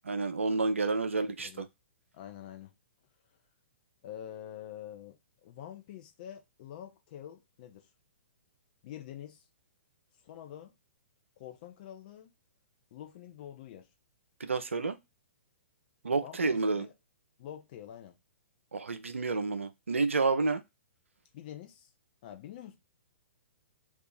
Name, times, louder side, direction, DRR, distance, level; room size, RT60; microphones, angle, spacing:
voice 1, 0.1-1.7 14.4-15.0 16.0-16.9 18.7-20.6, right 3 dB, 75° right, 0.4 m, -29 dB
voice 2, 1.0-1.6 2.1-2.7 4.0-7.9 8.8-9.4 10.2-10.7 11.4-12.3 12.9-13.9 16.2-16.9 17.4-18.2 21.3-21.9 22.2-22.8, left 11 dB, 40° left, 0.7 m, -46 dB
2.7 x 2.4 x 3.8 m
figure-of-eight pair, 115°, 7 cm